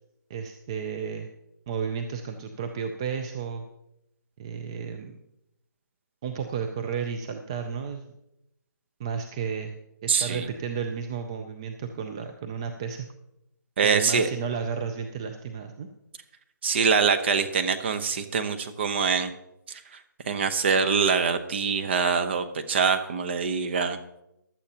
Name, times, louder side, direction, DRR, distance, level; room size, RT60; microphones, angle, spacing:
voice 1, 0.3-1.3 1.7-3.6 4.4-5.2 6.2-8.1 9.0-13.1 13.8-15.9, right 6 dB, 15° right, 6 dB, 0.4 m, -33 dB
voice 2, 10.1-10.5 13.8-14.3 16.6-19.3 19.7-19.8 20.3-24.0, right 5 dB, 35° right, 9 dB, 0.8 m, -24 dB
15.5 x 11.5 x 2.9 m, 0.85 s
hypercardioid pair, 165°, 11 cm